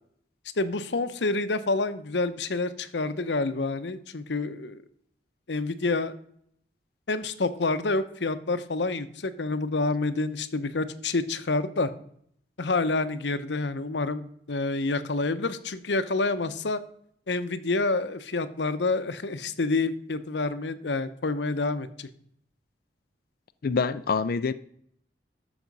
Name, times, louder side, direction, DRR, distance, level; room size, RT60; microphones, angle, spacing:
voice 1, 0.6-4.8 5.5-6.1 7.1-11.9 12.6-16.8 17.3-22.1, left 3 dB, 80° left, 0.8 m, -28 dB
voice 2, 23.6-24.5, left 5 dB, 55° left, 0.4 m, -26 dB
12.0 x 7.0 x 5.3 m
head